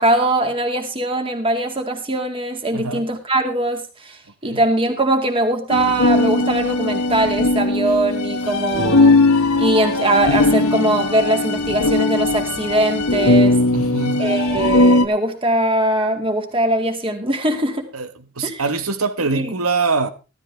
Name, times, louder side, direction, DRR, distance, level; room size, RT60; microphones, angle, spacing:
voice 1, 0.0-4.2 4.4-9.2 9.6-13.6 14.2-17.9 18.4-18.6 19.3-19.5, right 1 dB, 25° right, 2.3 m, -21 dB
voice 2, 2.7-3.1 4.4-4.6 13.7-14.3 17.9-18.1 18.4-20.1, right 4 dB, 80° right, 1.4 m, -23 dB
sound 1, 5.7-15.1, left 2 dB, 90° left, 1.3 m, -18 dB
15.0 x 13.5 x 3.4 m
head